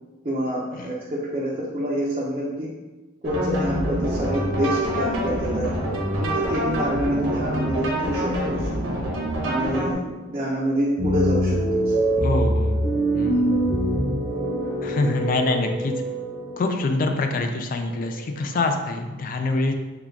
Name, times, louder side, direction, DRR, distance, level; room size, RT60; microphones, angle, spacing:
voice 1, 0.2-2.7 3.2-5.7 6.2-8.7 9.4-11.6 13.3-13.5 15.0-15.3, equal, 30° right, -6 dB, 0.5 m, -27 dB
sound 1, 3.2-9.9, equal, 80° right, 0.7 m, -26 dB
sound 2, 11.0-18.5, right 1 dB, 60° left, 0.9 m, -24 dB
voice 2, 12.2-12.8 13.1-13.5 14.8-16.0 16.6-19.7, left 2 dB, 45° left, 5 dB, 0.3 m, -25 dB
3.7 x 2.3 x 3.4 m, 1.2 s
head